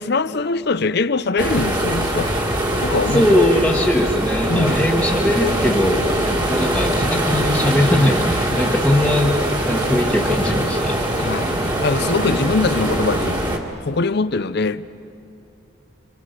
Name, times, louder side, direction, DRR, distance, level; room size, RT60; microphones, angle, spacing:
voice 1, 0.0-2.3 2.8-3.4 4.5-4.8 11.2-14.8, left 3 dB, 50° left, 0.6 m, -22 dB
sound 1, 1.4-13.6, right 1 dB, 20° right, 1.9 m, -22 dB
voice 2, 3.1-6.0 6.4-11.0, left 1 dB, 5° left, 1.4 m, -20 dB
28.0 x 26.5 x 6.6 m
head